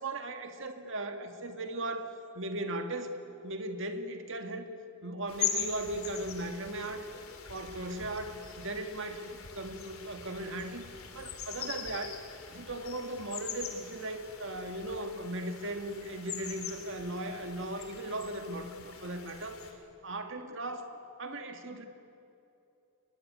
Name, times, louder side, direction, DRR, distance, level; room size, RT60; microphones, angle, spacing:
voice 1, 0.0-3.1 3.4-4.7 5.0-7.1 7.5-10.8 11.1-12.1 12.5-19.6 20.0-20.9 21.2-21.9, right 1 dB, 60° right, 6 dB, 1.9 m, -37 dB
sound 1, 5.3-19.7, left 8 dB, 90° left, 3.0 m, -42 dB
23.0 x 21.5 x 9.4 m, 2.8 s
head